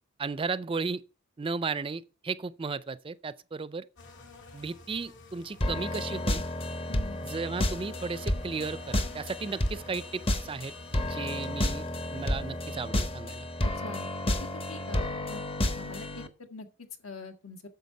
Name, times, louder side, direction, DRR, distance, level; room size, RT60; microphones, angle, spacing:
voice 1, 0.2-1.0 1.4-3.9 4.5-6.4 7.2-13.5, right 4 dB, 25° right, 0.4 m, -35 dB
sound 1, 4.0-12.9, left 4 dB, 60° left, 2.6 m, -51 dB
sound 2, 5.6-16.3, left 1 dB, 25° left, 0.7 m, -31 dB
voice 2, 6.9-7.2 13.6-14.1 14.4-15.4 15.7-17.7, left 3 dB, 75° left, 1.6 m, -44 dB
9.3 x 7.0 x 5.6 m
head